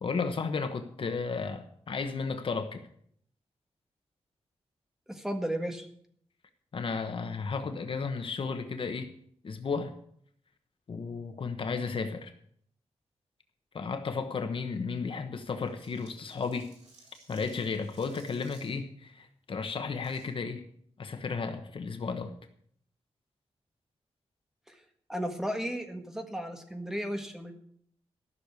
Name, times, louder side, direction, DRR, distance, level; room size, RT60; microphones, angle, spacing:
voice 1, 0.0-2.8 6.7-9.1 9.4-9.9 10.9-12.3 13.7-16.7 17.3-20.7 21.0-22.3, left 5 dB, 50° left, 7 dB, 1.2 m, -33 dB
voice 2, 5.1-5.9 24.7-24.8 25.1-27.5, equal, 5° right, 5 dB, 1.6 m, -34 dB
sound 1, 15.6-18.7 19.9-20.3, right 3 dB, 85° right, 5.1 m, -58 dB
13.5 x 6.7 x 8.2 m, 0.65 s
wide cardioid pair, 140°, 11 cm